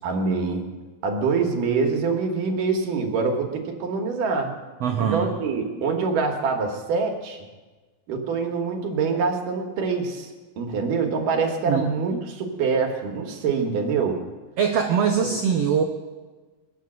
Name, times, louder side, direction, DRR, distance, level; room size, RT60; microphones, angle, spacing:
voice 1, 0.0-0.7 1.0-4.6 5.0-7.4 8.1-10.3 10.6-14.2 15.2-15.3, right 4 dB, 70° right, 3 dB, 3.1 m, -25 dB
voice 2, 4.8-5.3 11.7-11.8 12.1-12.2 14.6-15.8, right 7 dB, 90° right, 4 dB, 1.4 m, -22 dB
22.0 x 7.7 x 7.6 m, 1.3 s
omnidirectional pair, 4.2 m